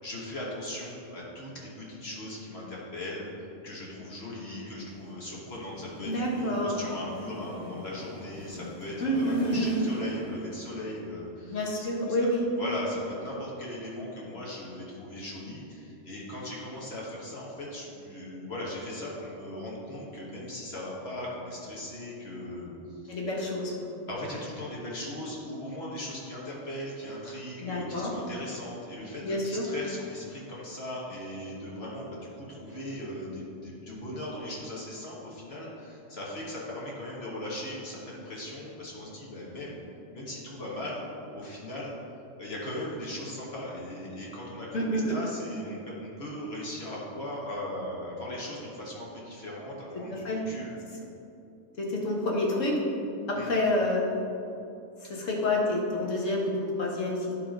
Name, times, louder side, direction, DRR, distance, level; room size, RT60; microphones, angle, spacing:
voice 1, 0.0-3.2 3.6-12.1 12.5-23.2 24.0-39.8 40.1-41.0 41.3-41.9 42.4-50.7 53.3-53.5, left 1 dB, 55° left, -5 dB, 1.6 m, -38 dB
sound 1, 4.7-11.3, left 1 dB, 25° right, 1.5 m, -45 dB
voice 2, 6.0-6.8 9.0-9.9 11.5-12.4 23.1-23.9 27.6-28.1 29.2-29.6 44.7-45.1 50.1-50.4 51.8-52.8 53.3-54.1 55.0-57.3, left 1 dB, 80° left, -3 dB, 1.6 m, -28 dB
10.0 x 3.4 x 5.2 m, 2.7 s
omnidirectional pair, 1.3 m